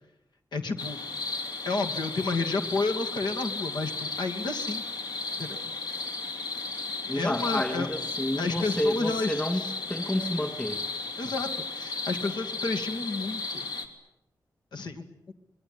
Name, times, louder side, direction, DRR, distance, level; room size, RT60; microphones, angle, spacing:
voice 1, 0.5-1.0 1.6-4.8 5.4-5.6 7.1-7.9 8.4-9.4 11.2-13.7 14.7-15.3, left 3 dB, 85° left, 5 dB, 2.5 m, -31 dB
sound 1, 0.8-13.9, left 3 dB, 70° left, 3.3 m, -35 dB
voice 2, 7.1-10.8, left 1 dB, 15° left, 8 dB, 2.6 m, -30 dB
26.0 x 21.0 x 9.8 m, 0.89 s
wide cardioid pair, 135°, 7 cm